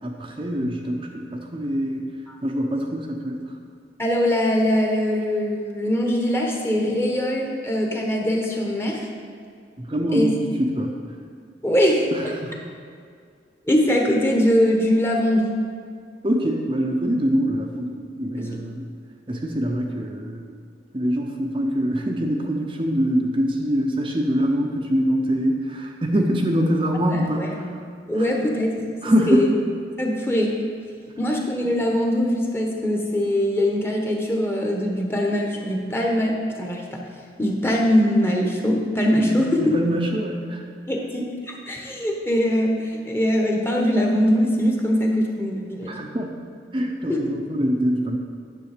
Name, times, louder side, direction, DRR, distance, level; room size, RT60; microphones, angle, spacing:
voice 1, 0.0-2.1 2.4-3.4 9.8-10.9 12.1-12.6 16.2-18.9 19.3-20.6 20.9-27.8 28.2-28.3 29.0-29.5 39.2-40.6 45.9-46.3 46.7-48.2, equal, 30° right, 1 dB, 0.7 m, -24 dB
voice 2, 4.0-9.1 10.1-10.3 11.6-12.1 13.7-15.6 18.4-18.5 27.1-27.6 28.1-28.7 29.0-29.5 30.0-30.6 31.2-37.0 37.4-39.7 40.9-45.9 47.1-47.4, equal, 15° left, 0 dB, 1.0 m, -22 dB
10.0 x 6.9 x 5.0 m, 2.2 s
head